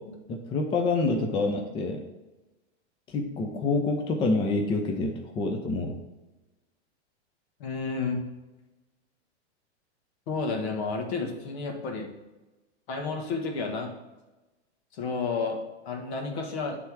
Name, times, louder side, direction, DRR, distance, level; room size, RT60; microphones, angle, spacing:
voice 1, 0.3-2.0 3.1-6.0, left 3 dB, 15° left, 3 dB, 0.5 m, -27 dB
voice 2, 7.6-8.2 10.3-12.1 12.9-13.9 14.9-15.6 15.8-16.8, left 4 dB, 65° left, 2 dB, 1.6 m, -31 dB
8.5 x 3.5 x 4.7 m, 1.1 s
hypercardioid pair, 135°, 34 cm